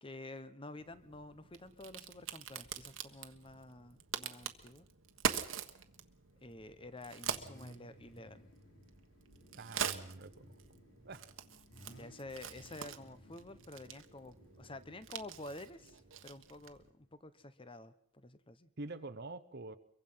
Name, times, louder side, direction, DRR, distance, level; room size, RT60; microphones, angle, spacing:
voice 1, 0.0-4.9 6.4-8.4 11.9-18.7, left 2 dB, 25° left, 13 dB, 1.0 m, -50 dB
Crack, 0.8-16.9, right 7 dB, 75° right, 1.3 m, -44 dB
Car / Idling / Accelerating revving vroom, 5.1-17.1, equal, 65° left, 3.4 m, -61 dB
voice 2, 9.5-10.6 11.0-11.3 18.8-19.8, right 2 dB, 55° right, 11 dB, 0.9 m, -46 dB
23.5 x 23.0 x 5.7 m, 0.68 s
head